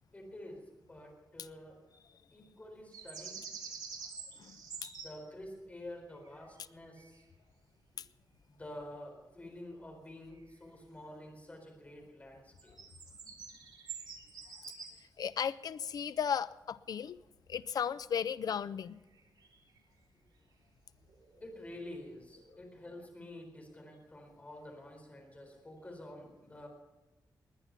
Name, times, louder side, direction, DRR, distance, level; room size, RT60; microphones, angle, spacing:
voice 1, 0.1-1.8 2.3-3.4 5.0-7.2 8.5-12.8 21.4-26.7, left 1 dB, 20° left, 1 dB, 4.2 m, -49 dB
sound 1, 2.9-5.1 6.3-6.7 7.0-7.2 10.4-10.6 12.6-14.9 19.2-19.8 21.1-22.0 22.3-22.5, right 6 dB, 85° right, 3.6 m, -47 dB
voice 2, 4.4-4.9 8.0-8.1 15.2-17.2 17.5-19.0, left 7 dB, 60° left, 16 dB, 0.5 m, -35 dB
20.5 x 9.9 x 5.8 m, 1.1 s
wide cardioid pair, 150°, 7 cm